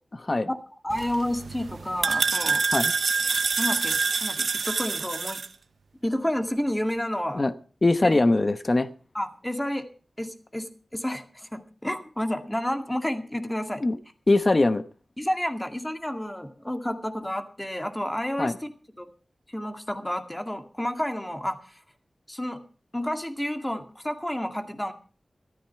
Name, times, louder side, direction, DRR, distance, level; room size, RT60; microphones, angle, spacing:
voice 1, 0.8-2.6 3.6-5.4 6.0-7.4 8.0-8.2 9.1-9.9 10.2-13.8 15.2-18.7 19.0-19.1 19.5-21.6 22.3-22.6 22.9-24.9, left 1 dB, 15° left, 6 dB, 2.1 m, -30 dB
sound 1, 0.9-5.5, right 4 dB, 90° right, 0.7 m, -26 dB
voice 2, 7.8-8.9 13.8-14.0 14.3-14.8 18.4-18.5, left 2 dB, 45° left, 12 dB, 0.9 m, -21 dB
14.0 x 13.5 x 4.6 m, 0.39 s
cardioid pair, 45°, 0 cm